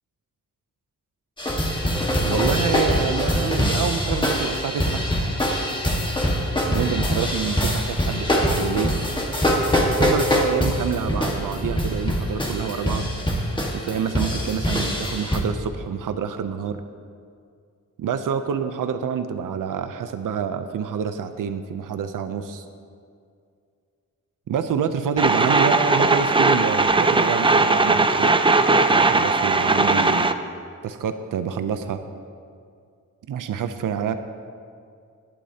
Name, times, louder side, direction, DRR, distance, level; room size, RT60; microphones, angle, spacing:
sound 1, 1.4-15.4, equal, 15° left, 1.5 m, -23 dB
voice 1, 2.2-5.0 6.7-8.9 10.0-13.1 13.7-16.8 18.0-22.6 24.5-28.3 28.9-30.3 30.8-32.0 33.3-34.2, right 7 dB, 85° right, 9 dB, 0.6 m, -27 dB
sound 2, 25.2-30.3, right 3 dB, 15° right, 0.4 m, -18 dB
20.0 x 12.0 x 2.8 m, 2.3 s
wide cardioid pair, 130°, 31 cm